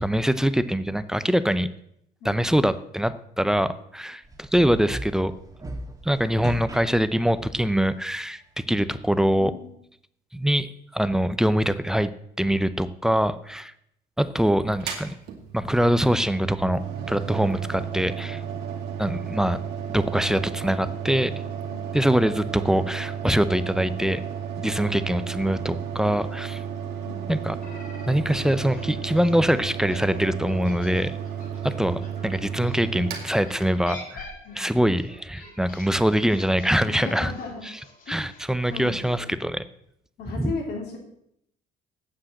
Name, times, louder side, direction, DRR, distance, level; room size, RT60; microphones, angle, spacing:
voice 1, 0.0-1.7 2.2-5.3 6.0-8.4 8.7-9.5 10.3-12.1 12.4-13.7 14.2-15.2 15.5-16.8 17.1-18.4 19.0-19.6 19.9-21.3 21.9-24.2 24.6-26.6 27.3-27.6 28.1-31.1 31.6-34.3 34.5-37.3 37.6-37.8 38.1-39.7 40.4-40.5, equal, 5° right, 14 dB, 0.6 m, -23 dB
sound 1, 4.2-7.8, right 1 dB, 20° right, 1.6 m, -38 dB
voice 2, 9.4-9.8 21.7-21.8 27.0-27.6 34.4-34.8 36.9-37.6 38.1-38.3 38.7-39.4 40.2-41.0, left 3 dB, 70° left, 0 dB, 3.6 m, -36 dB
Mechanical fan, 14.7-34.1, right 8 dB, 85° right, 2.3 m, -33 dB
sound 2, 27.6-32.9 33.4-39.3, left 2 dB, 55° left, 5.3 m, -45 dB
8.8 x 7.5 x 7.6 m, 0.74 s
cardioid pair, 110°, 17 cm